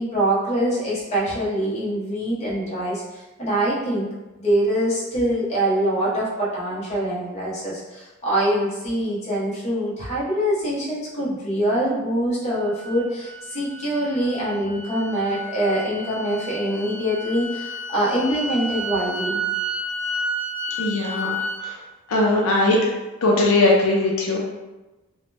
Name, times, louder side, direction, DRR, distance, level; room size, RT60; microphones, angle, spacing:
voice 1, 0.0-4.1 4.3-19.4, right 1 dB, 30° left, -7 dB, 0.9 m, -24 dB
sound 1, 12.5-21.6, equal, 75° right, 0.6 m, -31 dB
voice 2, 20.8-21.4 21.6-21.7 22.1-22.8 23.2-24.4, left 2 dB, 80° left, -2 dB, 0.5 m, -19 dB
2.9 x 2.1 x 3.1 m, 1.1 s
head